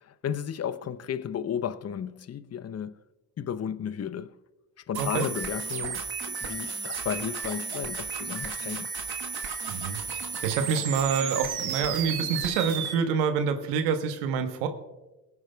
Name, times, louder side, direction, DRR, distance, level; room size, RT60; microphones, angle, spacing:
voice 1, 0.0-3.0 3.4-4.4 4.9-8.9, left 8 dB, 35° left, 0.7 m, -33 dB
sound 1, 4.9-12.9, right 6 dB, 55° right, 1.4 m, -33 dB
voice 2, 9.7-14.7, right 6 dB, 80° right, 1.2 m, -27 dB
22.0 x 9.5 x 2.3 m
hypercardioid pair, 50°, 46 cm